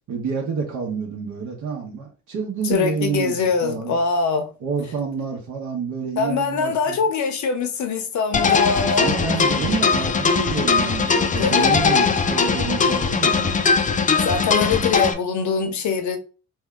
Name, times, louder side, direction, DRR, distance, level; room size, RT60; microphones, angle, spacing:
voice 1, 0.1-4.0 4.6-7.0 9.0-13.8, right 6 dB, 75° right, 0.9 m, -28 dB
voice 2, 2.6-4.5 6.2-9.1 11.4-11.8 14.2-16.2, left 5 dB, 70° left, 0.8 m, -23 dB
Wind instrument woodwind instrument, 8.2-13.5, right 6 dB, 55° right, 0.5 m, -38 dB
sound 1, 8.3-15.1, left 5 dB, 25° left, 0.4 m, -20 dB
2.7 x 2.2 x 3.4 m
cardioid pair, 90°, 30 cm